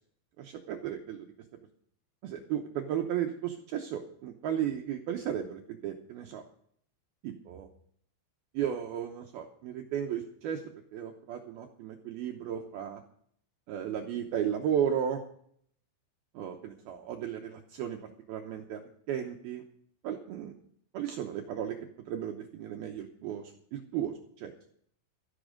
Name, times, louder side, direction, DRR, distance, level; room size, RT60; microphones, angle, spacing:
voice 1, 0.4-1.3 2.2-6.4 7.2-7.7 8.5-10.6 10.9-13.0 13.7-15.2 16.3-18.0 18.3-18.8 19.1-19.6 20.0-20.5 20.9-21.8 22.1-23.4 23.7-24.5, right 9 dB, 75° right, 3 dB, 2.3 m, -34 dB
13.5 x 11.5 x 5.1 m, 0.65 s
omnidirectional pair, 5.4 m